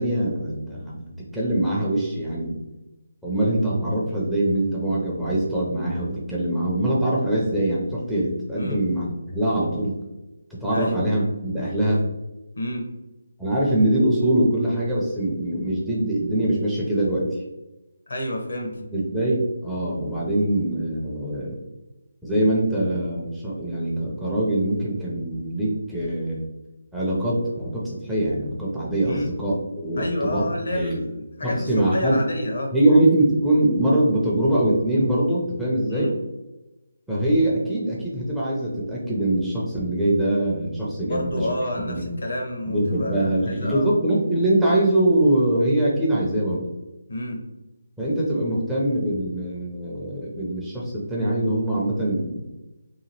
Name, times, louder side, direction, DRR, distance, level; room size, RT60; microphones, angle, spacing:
voice 1, 0.0-2.5 3.2-10.0 10.6-12.1 13.4-17.4 18.9-21.6 22.2-26.4 26.9-31.0 31.4-32.2 32.7-36.1 37.1-41.5 41.8-42.1 42.7-46.7 48.0-52.5, right 1 dB, ahead, -8 dB, 0.5 m, -23 dB
voice 2, 12.5-12.9 18.1-18.8 29.1-29.3 30.0-32.7 35.9-36.1 41.0-43.9 47.1-47.4, left 1 dB, 70° left, 0 dB, 0.9 m, -29 dB
2.8 x 2.3 x 2.9 m, 1.0 s
figure-of-eight pair, 160°, 0 cm